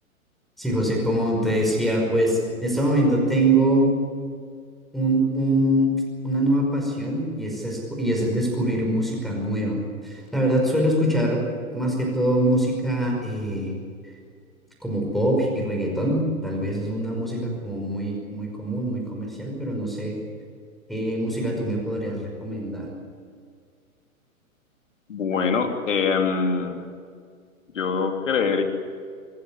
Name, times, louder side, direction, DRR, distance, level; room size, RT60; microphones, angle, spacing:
voice 1, 0.6-3.9 4.9-6.0 6.2-11.4 11.7-13.7 14.8-20.2 20.9-22.9, right 1 dB, ahead, 0 dB, 5.4 m, -23 dB
voice 2, 25.1-26.9 27.7-28.6, left 5 dB, 60° left, 5 dB, 3.0 m, -23 dB
25.0 x 15.0 x 9.9 m, 2.1 s
figure-of-eight pair, 115°, 43 cm